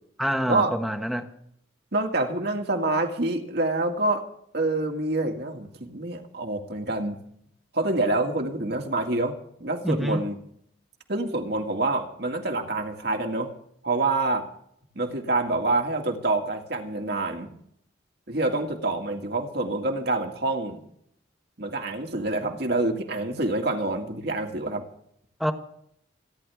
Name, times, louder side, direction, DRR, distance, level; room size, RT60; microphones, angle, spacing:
voice 1, 0.2-1.3 9.8-10.2 25.4-25.5, equal, ahead, 1.3 m, -26 dB
voice 2, 1.9-4.2 4.5-7.2 7.7-10.4 11.1-13.5 13.8-14.5 15.0-17.5 18.3-20.8 21.6-24.8, right 2 dB, 55° right, 2.2 m, -27 dB
28.5 x 11.0 x 3.6 m
head